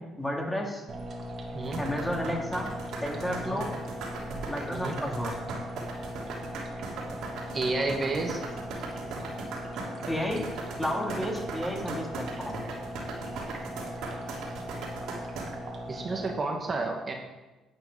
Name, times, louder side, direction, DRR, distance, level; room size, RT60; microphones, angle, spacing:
voice 1, 0.2-0.8 1.8-2.7 3.0-3.7 4.5-5.3 10.1-10.5 10.8-12.6, equal, 10° left, 0 dB, 2.8 m, -32 dB
sound 1, 0.9-16.3, equal, 50° right, 2.2 m, -39 dB
sound 2, 1.6-15.4, right 3 dB, 75° right, 3.1 m, -38 dB
voice 2, 4.7-5.1 7.5-8.4 15.9-17.1, right 3 dB, 35° right, 1 dB, 1.7 m, -31 dB
11.0 x 8.1 x 5.6 m, 1.1 s
supercardioid pair, 75°, 0 cm